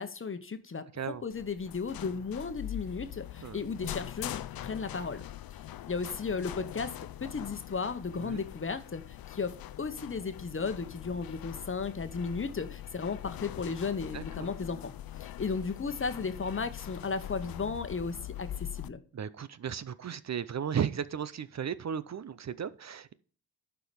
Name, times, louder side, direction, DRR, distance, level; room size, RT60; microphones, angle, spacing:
voice 1, 0.0-5.2 5.9-6.9 7.2-14.9 15.2-19.0, left 4 dB, 30° left, 1.1 m, -35 dB
voice 2, 0.9-1.2 3.4-3.6 8.2-8.4 14.1-14.5 19.1-23.1, right 8 dB, 45° right, 0.7 m, -35 dB
sound 1, 1.3-18.9, left 12 dB, 65° left, 0.6 m, -43 dB
11.5 x 4.9 x 5.2 m
cardioid pair, 70°, 39 cm